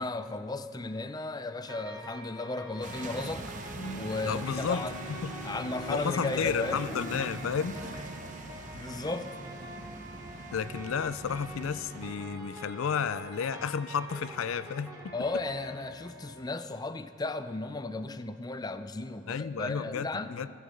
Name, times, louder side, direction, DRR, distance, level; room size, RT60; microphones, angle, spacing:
voice 1, 0.0-3.5 3.9-4.9 5.4-7.1 8.7-9.3 15.1-20.4, left 2 dB, 20° left, 10 dB, 0.4 m, -35 dB
sound 1, 1.7-16.4, equal, 15° right, 1.3 m, -46 dB
sound 2, 2.8-12.1, right 2 dB, 40° right, 0.8 m, -43 dB
Bowed string instrument, 3.7-8.9, left 1 dB, 50° left, 1.1 m, -43 dB
voice 2, 4.2-4.8 5.2-5.3 5.9-8.0 10.5-15.1 19.3-20.5, left 6 dB, 75° left, 15 dB, 0.4 m, -32 dB
14.5 x 9.2 x 7.6 m, 2.5 s
head